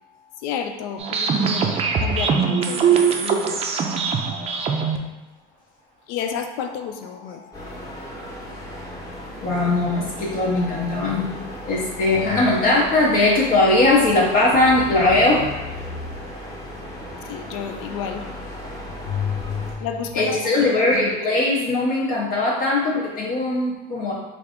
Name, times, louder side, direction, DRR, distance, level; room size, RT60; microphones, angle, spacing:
voice 1, 0.4-3.7 6.1-7.4 17.2-18.3 19.8-21.2, left 7 dB, 85° left, 6 dB, 0.4 m, -31 dB
sound 1, 1.0-5.0, right 6 dB, 35° right, 0.4 m, -21 dB
sound 2, 7.5-19.7, equal, 20° left, 0.9 m, -36 dB
voice 2, 9.4-15.5 19.1-19.9 20.1-24.1, left 2 dB, 50° left, -5 dB, 0.7 m, -20 dB
3.3 x 2.5 x 3.5 m, 1.0 s
cardioid pair, 120°, 19 cm